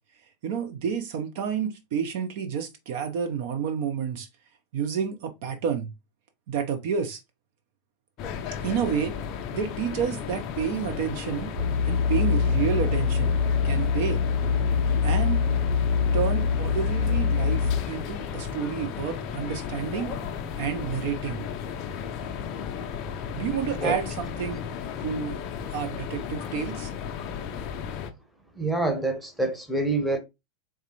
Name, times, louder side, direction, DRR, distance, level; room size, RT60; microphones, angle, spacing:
voice 1, 0.4-4.3 4.7-5.9 6.5-7.2 8.6-9.2 9.5-11.5 11.9-13.3 13.6-14.2 15.0-15.4 16.1-20.2 20.6-21.4 23.3-24.6 25.0-25.4 25.7-26.9, right 7 dB, 50° right, 0.5 m, -29 dB
sound 1, 8.2-28.1, left 7 dB, 35° left, 0.5 m, -34 dB
sound 2, 11.6-17.8, left 5 dB, 30° right, 1.1 m, -24 dB
voice 2, 28.6-30.2, right 2 dB, ahead, 0.8 m, -26 dB
3.5 x 3.2 x 2.8 m
figure-of-eight pair, 90°, 0 cm